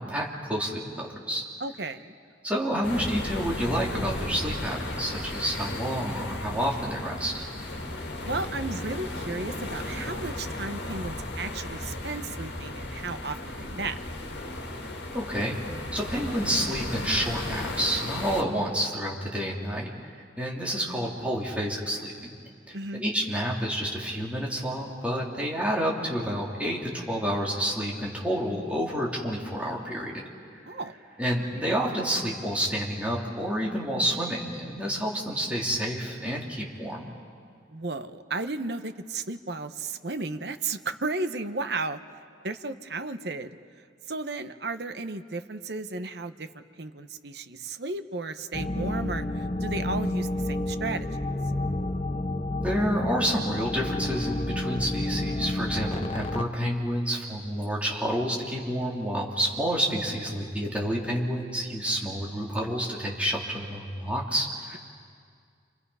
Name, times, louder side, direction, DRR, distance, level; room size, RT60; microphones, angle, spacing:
voice 1, 0.0-1.4 2.4-7.4 15.1-15.6 15.9-19.9 20.4-22.1 22.7-22.8 23.0-30.1 31.2-37.1 52.6-64.8, equal, 5° right, -3 dB, 3.1 m, -29 dB
voice 2, 1.6-2.1 8.0-14.0 22.7-23.0 30.7-31.0 37.7-42.0 42.4-43.5 44.1-51.1, right 3 dB, 60° right, 10 dB, 0.9 m, -34 dB
sound 1, 2.8-18.4, left 1 dB, 65° left, 2.2 m, -35 dB
sound 2, 48.5-56.4, left 1 dB, 30° left, 0.8 m, -30 dB
29.5 x 27.0 x 5.6 m, 2.2 s
head